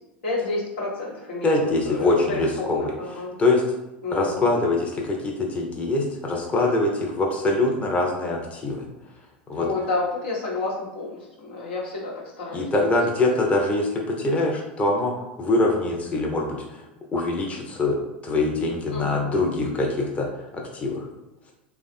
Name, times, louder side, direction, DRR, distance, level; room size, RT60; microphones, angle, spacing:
voice 1, 0.2-1.5 1.8-3.4 4.0-4.4 9.5-12.7 18.9-19.4, left 3 dB, 75° left, -4 dB, 1.2 m, -30 dB
voice 2, 1.4-3.6 4.1-8.9 9.5-9.7 12.5-15.1 15.4-16.8 17.1-18.0 18.2-21.1, left 2 dB, 20° left, -1 dB, 0.7 m, -24 dB
3.1 x 2.3 x 4.2 m, 0.98 s
hypercardioid pair, 90°, 6 cm